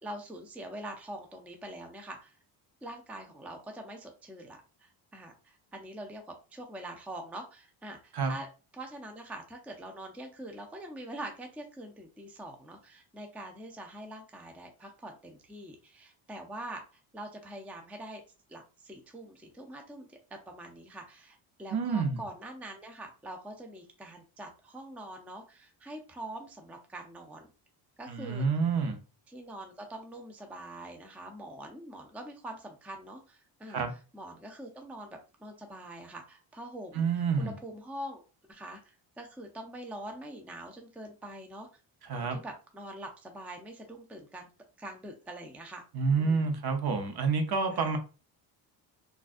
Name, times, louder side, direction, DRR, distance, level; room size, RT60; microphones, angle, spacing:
voice 1, 0.0-2.3 2.8-8.5 8.7-16.8 17.1-18.2 18.5-27.5 28.0-28.5 29.3-33.8 34.1-37.1 37.4-38.2 38.5-38.8 39.2-41.7 42.1-44.5 44.8-45.8 46.2-46.5 47.7-48.0, right 1 dB, 5° right, 0.5 m, -44 dB
voice 2, 21.7-22.2 28.1-29.0 33.7-33.9 36.9-37.5 42.1-42.4 45.9-48.0, right 5 dB, 50° right, 0.9 m, -28 dB
3.8 x 2.5 x 2.6 m
cardioid pair, 90°, 50 cm